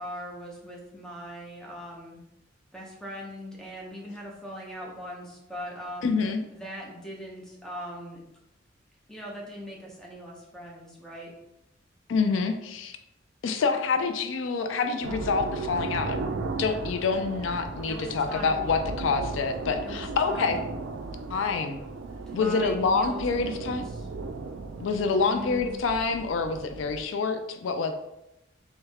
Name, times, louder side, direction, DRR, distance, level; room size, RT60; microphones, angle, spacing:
voice 1, 0.0-2.2 2.7-6.1 6.5-8.2 9.1-11.3 17.9-18.6 19.8-20.6 22.3-24.1 25.2-25.7, equal, 5° left, -3 dB, 0.8 m, -40 dB
voice 2, 6.0-6.4 12.1-13.0 13.4-16.2 16.6-20.6 21.3-21.8 22.3-23.8 24.8-27.9, left 4 dB, 80° left, 7 dB, 0.4 m, -27 dB
sound 1, 15.0-27.0, right 3 dB, 70° right, 0.4 m, -36 dB
3.5 x 3.1 x 3.3 m, 0.88 s
head